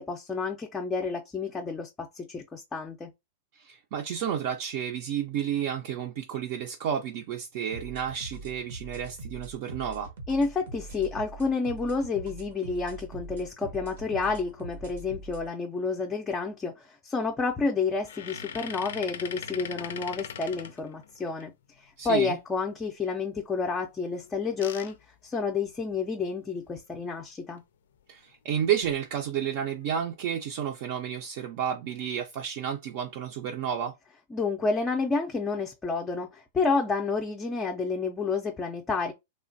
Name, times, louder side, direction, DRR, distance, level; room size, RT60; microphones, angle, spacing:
voice 1, 0.0-3.1 10.3-25.0 25.2-27.6 34.3-39.1, left 4 dB, 15° left, 0.4 m, -30 dB
voice 2, 3.5-10.1 22.0-22.4 28.1-34.0, right 9 dB, 50° right, 0.5 m, -31 dB
sound 1, 7.7-15.5, right 2 dB, 85° right, 0.8 m, -42 dB
sound 2, 18.0-21.4 24.1-26.1 26.6-26.7 26.9-27.1 28.6-29.0 29.6-30.1, left 8 dB, 80° left, 0.4 m, -41 dB
3.2 x 2.1 x 2.6 m
supercardioid pair, 150°, 0 cm